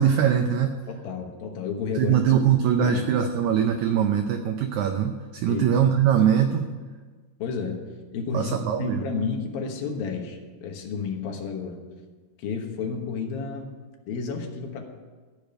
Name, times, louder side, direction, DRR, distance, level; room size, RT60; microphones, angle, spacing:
voice 1, 0.0-0.8 2.0-6.7 8.3-9.1, right 8 dB, 80° right, 6 dB, 1.7 m, -22 dB
voice 2, 0.9-2.2 2.8-3.0 5.5-5.8 7.4-7.8 8.1-11.8 12.4-13.7 14.1-14.9, left 5 dB, 80° left, 3 dB, 3.2 m, -31 dB
15.0 x 5.2 x 9.0 m, 1.4 s
omnidirectional pair, 4.2 m